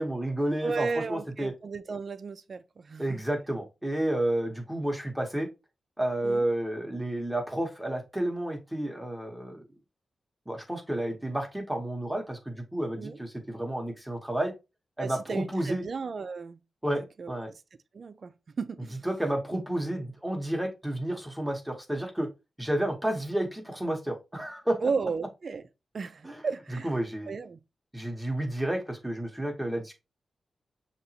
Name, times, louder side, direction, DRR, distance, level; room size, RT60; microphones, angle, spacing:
voice 1, 0.0-1.5 3.0-5.5 6.0-9.6 10.5-14.5 15.0-15.8 16.8-17.5 19.0-22.3 22.6-24.8 26.2-26.4 26.8-27.3 27.9-29.9, right 1 dB, 5° right, 1.0 m, -31 dB
voice 2, 0.6-3.2 6.2-6.4 13.0-13.2 15.0-16.6 17.2-17.5 17.9-19.0 24.8-25.6 25.9-26.9 27.3-27.6, right 4 dB, 50° right, 0.4 m, -34 dB
6.6 x 2.9 x 2.8 m
wide cardioid pair, 115°, 0 cm